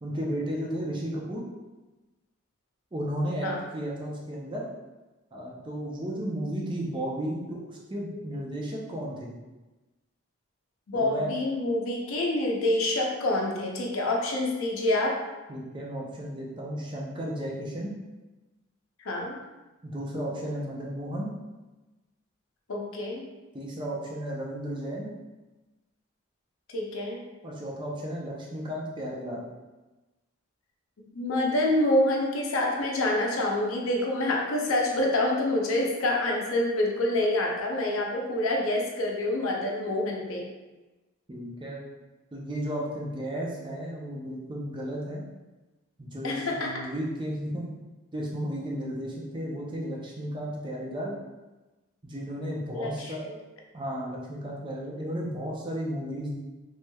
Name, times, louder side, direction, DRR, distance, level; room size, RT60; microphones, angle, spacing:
voice 1, 0.0-1.4 2.9-4.7 5.3-9.3 10.9-11.4 15.5-17.9 19.8-21.3 23.5-25.1 27.4-29.4 41.3-41.8 42.3-45.2 46.0-47.7 48.1-51.2 52.0-53.2 53.7-56.4, equal, 20° right, -3 dB, 0.4 m, -34 dB
voice 2, 10.9-15.2 19.0-19.4 22.7-23.2 26.7-27.2 31.1-40.5 46.2-46.7 52.7-53.4, left 1 dB, 75° left, -1 dB, 0.6 m, -27 dB
3.1 x 3.0 x 2.2 m, 1.1 s
head